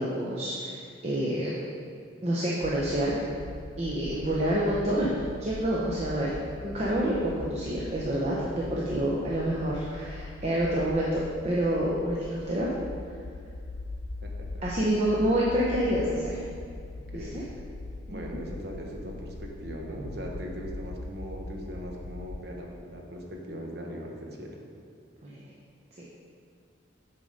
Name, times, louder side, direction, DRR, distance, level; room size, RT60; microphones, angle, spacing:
voice 1, 0.0-1.6 2.2-3.3 3.8-6.4 6.6-12.7 14.6-16.4 17.1-17.4 18.1-18.4 25.2-25.4 26.0-26.1, right 1 dB, 35° right, -5 dB, 0.7 m, -28 dB
sound 1, 2.6-22.4, left 2 dB, 90° left, 0.5 m, -41 dB
voice 2, 17.1-17.6 18.1-24.5, equal, 55° right, 0 dB, 1.1 m, -39 dB
8.2 x 4.2 x 5.1 m, 2.3 s
head